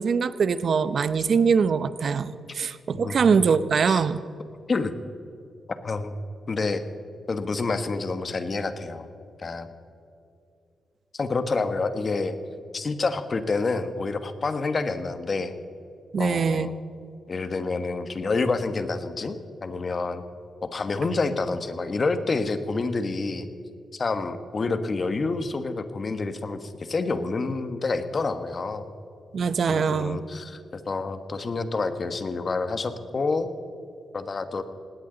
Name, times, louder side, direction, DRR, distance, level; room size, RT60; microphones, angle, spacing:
voice 1, 0.0-4.2 16.1-16.7 29.3-30.2, right 5 dB, 60° right, 14 dB, 0.8 m, -23 dB
voice 2, 2.9-3.4 3.9-4.0 4.7-4.9 5.8-6.1 6.5-6.8 7.3-9.1 9.4-9.7 11.1-12.4 12.7-15.6 16.2-16.7 17.3-20.2 20.6-23.5 23.9-28.9 29.7-33.5 34.1-34.6, left 3 dB, 40° left, 9 dB, 1.3 m, -28 dB
19.5 x 17.5 x 4.0 m, 2.6 s
cardioid pair, 90°, 0 cm